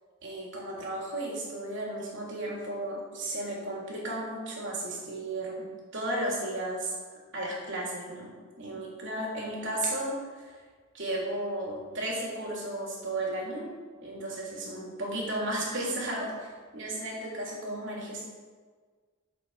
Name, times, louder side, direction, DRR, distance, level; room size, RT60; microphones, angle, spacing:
voice 1, 0.2-5.7 5.9-6.9 7.3-8.3 8.6-10.6 10.9-13.7 14.0-18.3, right 1 dB, 55° right, -4 dB, 3.4 m, -34 dB
12.0 x 8.1 x 4.9 m, 1.5 s
head